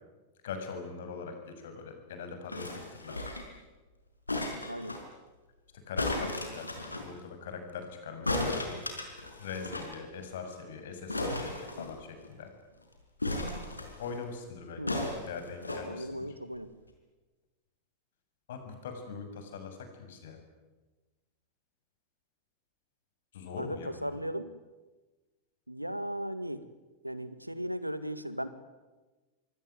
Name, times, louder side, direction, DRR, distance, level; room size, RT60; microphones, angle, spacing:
voice 1, 0.4-3.3 5.7-8.8 9.4-12.5 14.0-15.0 15.3-16.3 18.5-20.4 23.3-24.2, left 5 dB, 60° left, 6 dB, 7.0 m, -42 dB
sound 1, 2.5-3.6 4.3-5.0 6.0-7.1 8.3-10.0 10.2-10.3 10.5-10.7 11.1-12.3 13.2-14.1 14.9-15.8 16.6-16.7, left 2 dB, 80° left, 5.2 m, -35 dB
voice 2, 4.7-5.0 14.8-15.0 15.8-16.7 23.6-24.6 25.7-26.6 27.0-28.5, equal, 90° right, 13 dB, 1.7 m, -37 dB
26.5 x 24.0 x 9.5 m, 1.2 s
figure-of-eight pair, 90°, 0 cm